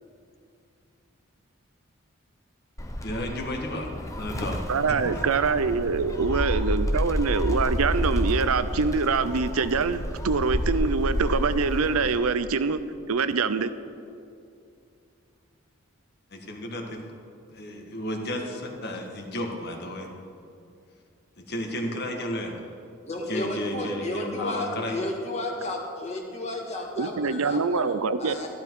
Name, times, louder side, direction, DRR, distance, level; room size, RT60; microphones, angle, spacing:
Gull seagull, 2.8-12.1, equal, 15° left, 0.8 m, -29 dB
voice 1, 3.0-4.6 4.9-5.2 16.3-17.0 17.5-20.1 21.5-22.6 23.3-25.0, left 1 dB, 50° left, 2 dB, 1.7 m, -33 dB
voice 2, 4.7-12.8 13.1-13.7 27.0-28.4, right 4 dB, 80° right, 13 dB, 0.6 m, -24 dB
voice 3, 23.1-28.5, left 1 dB, 30° left, 0 dB, 1.7 m, -33 dB
14.0 x 11.5 x 4.7 m, 2.5 s
head